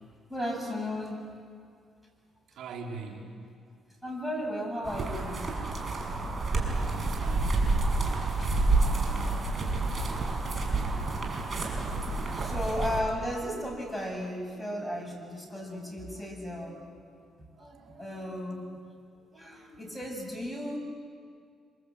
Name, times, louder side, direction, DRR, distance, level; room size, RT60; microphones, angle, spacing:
voice 1, 0.3-1.2 4.0-5.5 6.1-6.2 6.7-6.9 7.4-7.7 8.1-8.7 12.3-16.8 17.6-18.7 19.3-20.8, equal, ahead, 0 dB, 7.4 m, -35 dB
voice 2, 2.6-3.3 6.8-8.4 17.6-18.1 19.6-19.7, right 4 dB, 80° right, 0 dB, 3.8 m, -44 dB
sound 1, 4.8-13.0, right 2 dB, 40° right, 6.1 m, -29 dB
26.5 x 26.0 x 8.4 m, 2.2 s
cardioid pair, 90°, 0 cm